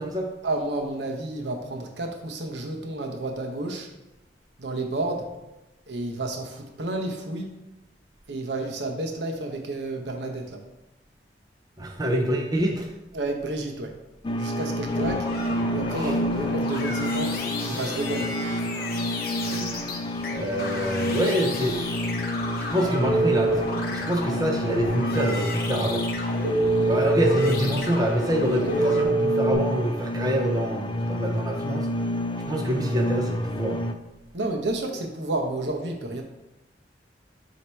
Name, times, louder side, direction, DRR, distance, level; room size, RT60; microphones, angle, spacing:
voice 1, 0.4-3.9 4.6-5.3 5.9-7.5 8.3-10.6 13.1-13.9 14.4-15.3 15.7-17.4 17.6-18.3 34.3-36.2, right 2 dB, 75° right, 3 dB, 0.9 m, -30 dB
voice 2, 11.8-12.9 16.0-16.2 19.5-19.9 20.3-21.8 22.7-26.0 26.9-31.9 32.5-33.9, equal, 20° right, 1 dB, 0.6 m, -26 dB
sound 1, 14.2-33.9, equal, 25° left, 0.3 m, -29 dB
sound 2, 14.9-29.0, left 2 dB, 55° left, 0.9 m, -34 dB
Telephone, 23.0-23.5 26.4-27.5 28.7-29.5, right 3 dB, 45° right, 1.9 m, -23 dB
7.7 x 2.9 x 4.4 m, 0.97 s
head